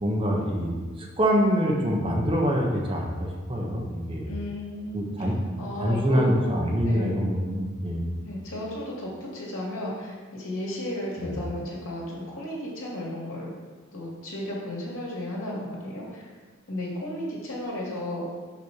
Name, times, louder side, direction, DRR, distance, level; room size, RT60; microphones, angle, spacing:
voice 1, 0.0-4.3 4.9-8.1 11.2-11.4, equal, 25° right, -1 dB, 1.1 m, -25 dB
voice 2, 4.3-5.3 5.6-6.5 6.8-7.2 8.2-13.5 13.9-16.3 16.7-18.3, left 1 dB, 80° left, -5 dB, 2.6 m, -34 dB
5.9 x 5.4 x 6.3 m, 1.4 s
head